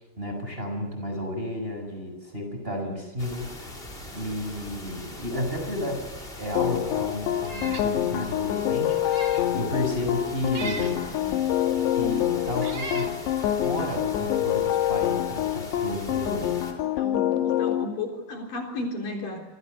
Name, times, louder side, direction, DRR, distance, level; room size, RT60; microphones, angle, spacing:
voice 1, 0.2-3.7 4.1-6.0 6.4-9.3 9.5-11.0 11.9-13.2 13.6-16.5, left 1 dB, 10° right, 3 dB, 6.5 m, -32 dB
sound 1, 3.2-16.7, left 1 dB, 15° left, 3.8 m, -41 dB
sound 2, 6.6-17.9, left 12 dB, 80° left, 3.4 m, -26 dB
Meow, 7.4-7.9 8.3-8.4 9.0-9.5 10.5-11.0 11.9-12.0 12.6-13.1, right 3 dB, 30° right, 3.2 m, -37 dB
voice 2, 11.1-11.5 16.7-19.4, left 2 dB, 50° left, 2 dB, 5.1 m, -34 dB
28.5 x 24.5 x 6.7 m, 1.2 s
omnidirectional pair, 5.0 m